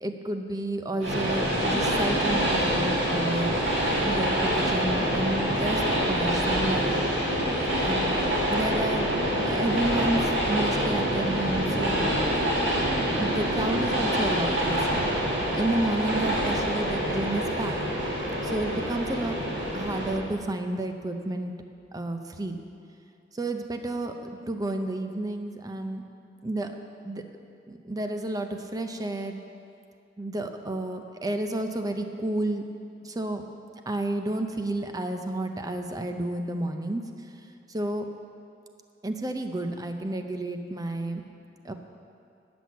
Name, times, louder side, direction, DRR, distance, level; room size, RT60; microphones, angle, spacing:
voice 1, 0.0-3.6 4.0-7.0 7.2-7.4 7.8-8.2 8.5-9.1 9.4-12.1 13.2-15.0 15.5-17.8 18.4-19.4 19.7-21.5 21.9-22.6 23.3-24.1 24.5-26.0 26.4-26.7 27.0-27.2 27.7-29.4 30.2-32.6 33.0-33.4 33.9-37.0 37.7-38.1 39.0-41.2 41.6-41.7, right 1 dB, 20° right, 6 dB, 0.6 m, -31 dB
Train, 1.0-20.1, equal, 70° right, 2.2 m, -26 dB
9.8 x 6.1 x 7.2 m, 2.5 s
head